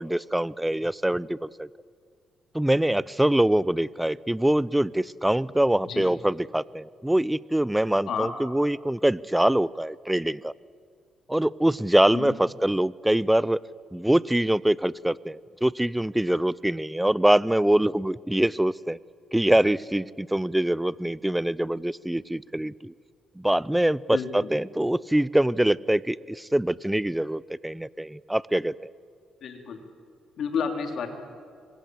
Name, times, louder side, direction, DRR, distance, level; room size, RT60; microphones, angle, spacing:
voice 1, 0.0-1.7 2.5-10.5 11.3-13.6 13.9-19.0 19.3-22.9 23.4-28.9, right 1 dB, 5° right, 20 dB, 0.5 m, -24 dB
voice 2, 29.4-29.8 30.4-31.1, left 6 dB, 65° left, 4 dB, 3.7 m, -30 dB
26.5 x 23.0 x 8.0 m, 2.2 s
cardioid pair, 90°, 0 cm